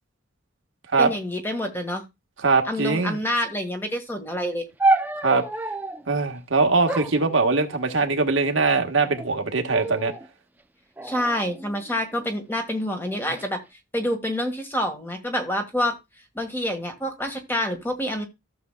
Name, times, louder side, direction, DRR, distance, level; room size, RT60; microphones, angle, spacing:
voice 1, 1.0-2.0 2.6-4.6 11.0-13.6 13.9-16.0 16.3-18.3, left 1 dB, 10° left, 1.6 m, -27 dB
voice 2, 2.4-3.2 5.2-5.4 6.1-10.1, right 3 dB, 80° right, 1.4 m, -21 dB
sound 1, 4.8-6.1 6.9-8.1 8.8-9.3 9.7-10.3 11.0-12.2 13.0-13.5, right 2 dB, 10° right, 0.5 m, -28 dB
14.5 x 6.9 x 2.3 m
head